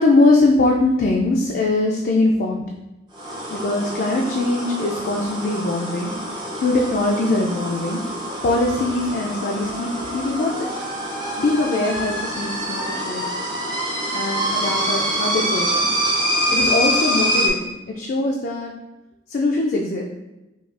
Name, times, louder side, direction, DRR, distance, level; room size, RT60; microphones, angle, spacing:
voice 1, 0.0-2.6 3.5-6.1 6.5-8.0 8.4-10.7 11.4-13.3 14.1-16.0 16.5-18.7 19.3-20.0, left 2 dB, 50° left, -1 dB, 0.4 m, -21 dB
sound 1, 3.1-17.5, equal, 25° right, 0.6 m, -25 dB
5.7 x 2.3 x 2.4 m, 0.97 s
head